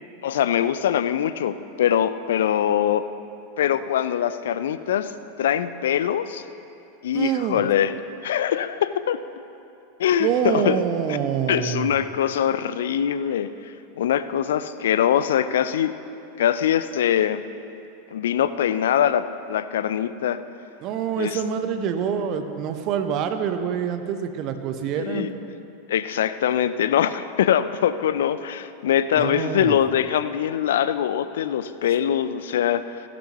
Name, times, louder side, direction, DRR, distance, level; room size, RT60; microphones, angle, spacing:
voice 1, 0.2-3.1 3.6-5.1 5.4-6.4 7.0-7.9 8.2-9.2 10.0-10.8 11.1-11.2 11.5-15.9 16.4-17.4 18.1-20.4 21.2-21.4 25.0-25.3 25.9-33.0, left 10 dB, 65° left, 13 dB, 0.4 m, -23 dB
voice 2, 7.1-7.6 10.2-11.9 20.8-25.3 29.2-29.8, right 8 dB, 45° right, 8 dB, 0.8 m, -26 dB
15.5 x 11.5 x 3.0 m, 2.7 s
figure-of-eight pair, 90°, 0 cm